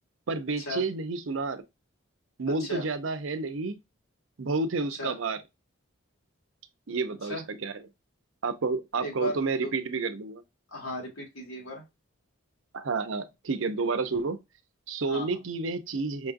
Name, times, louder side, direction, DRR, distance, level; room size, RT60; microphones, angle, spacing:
voice 1, 0.3-1.6 2.4-3.8 4.4-5.4 6.9-7.8 8.4-10.4 12.7-14.4 14.9-16.3, right 4 dB, 70° right, 0.6 m, -30 dB
voice 2, 9.0-9.7 10.7-11.8 15.1-15.3, left 1 dB, 80° left, 1.9 m, -36 dB
5.2 x 2.6 x 2.5 m
head